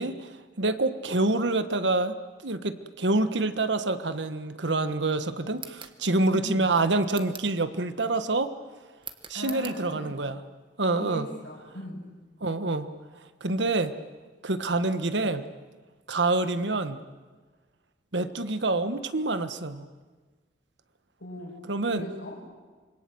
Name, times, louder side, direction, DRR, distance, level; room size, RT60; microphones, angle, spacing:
voice 1, 0.0-2.1 2.4-8.5 9.3-10.4 10.8-11.3 12.4-12.9 13.4-13.9 14.4-15.4 16.1-17.0 18.1-19.9 21.7-22.1, right 2 dB, 85° right, 11 dB, 1.4 m, -27 dB
sound 1, 5.5-6.0 7.1-7.6 9.0-9.8, right 7 dB, 30° right, 1.4 m, -43 dB
voice 2, 6.3-6.8 9.3-10.2 10.9-12.2 21.2-21.6 21.9-22.4, equal, 90° left, 0 dB, 7.1 m, -39 dB
26.0 x 23.5 x 7.9 m, 1.4 s
head